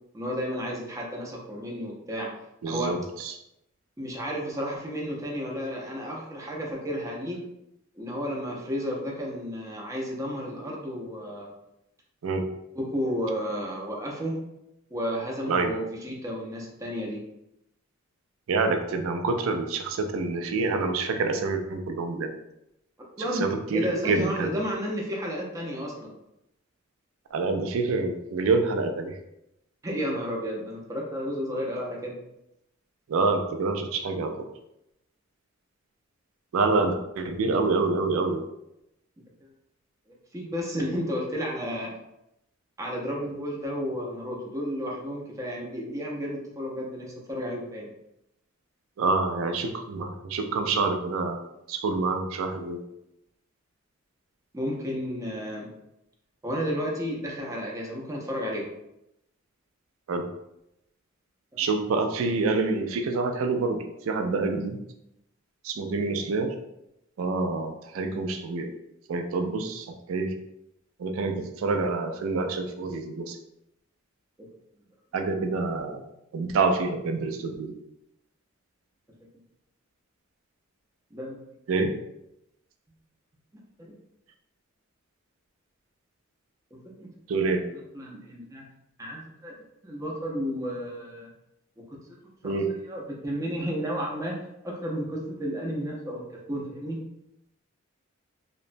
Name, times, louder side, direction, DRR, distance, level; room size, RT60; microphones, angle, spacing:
voice 1, 0.1-2.3 2.7-2.9 4.0-7.4 8.0-11.5 12.8-14.4 14.9-17.2 23.2-26.1 29.8-32.1 40.3-41.9 42.8-47.9 54.5-55.7 56.4-58.7 61.5-61.7 81.1-81.5 86.7-87.1 87.7-88.6 89.0-89.5 89.8-91.3 92.4-94.3 94.6-97.0, equal, 15° right, -3 dB, 0.5 m, -32 dB
voice 2, 2.6-3.3 12.2-12.5 15.5-15.7 18.5-22.3 23.2-24.5 27.3-29.2 33.1-34.5 36.5-38.4 49.0-51.4 51.7-52.8 60.1-60.3 61.6-64.8 65.6-66.5 67.2-68.7 69.1-70.3 71.0-73.4 75.1-76.0 76.3-77.7 81.7-81.9 87.3-87.6 92.4-92.7, right 3 dB, 80° right, 6 dB, 0.4 m, -27 dB
2.9 x 2.1 x 2.5 m, 0.85 s
head